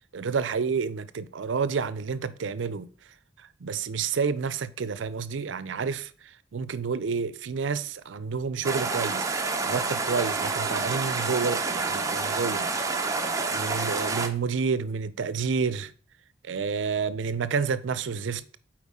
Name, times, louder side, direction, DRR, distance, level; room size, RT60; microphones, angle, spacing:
voice 1, 0.1-2.9 3.6-13.1 13.4-15.9 16.4-18.6, right 5 dB, 75° right, 0.5 m, -30 dB
sound 1, 8.6-14.3, right 4 dB, 15° right, 0.6 m, -28 dB
8.2 x 4.5 x 3.6 m
head